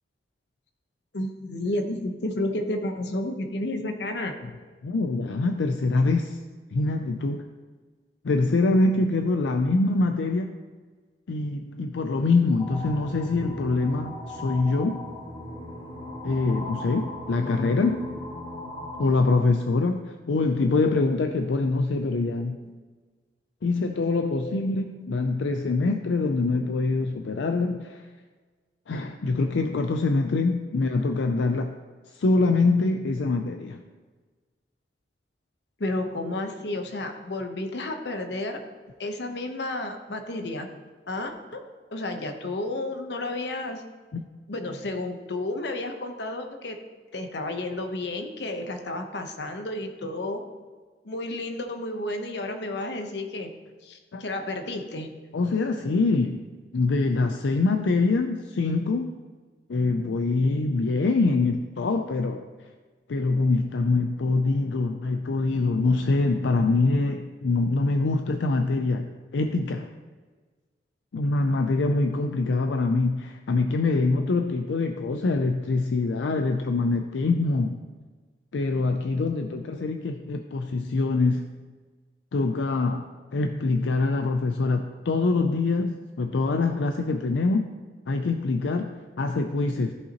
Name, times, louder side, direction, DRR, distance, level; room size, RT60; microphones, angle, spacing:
voice 1, 1.1-4.4 11.7-11.8 22.6-22.7 24.3-24.7 25.0-25.2 35.8-38.6 39.0-40.7 41.1-41.6 41.9-43.8 44.5-46.8 47.1-50.4 51.0-53.5 53.8-55.1, left 2 dB, 70° left, 6 dB, 0.9 m, -31 dB
voice 2, 4.8-6.4 6.7-7.5 8.2-10.5 11.3-15.0 16.2-18.0 19.0-22.6 23.6-28.1 28.9-31.7 32.1-33.8 44.1-44.2 54.1-54.2 55.3-56.4 56.7-59.1 59.7-62.4 63.1-69.9 71.1-77.8 78.5-81.4 82.3-87.7 88.1-89.9, left 3 dB, 90° left, 6 dB, 0.4 m, -24 dB
sound 1, 12.6-19.2, left 1 dB, 25° left, 1.6 m, -37 dB
14.0 x 5.6 x 2.9 m, 1.4 s
head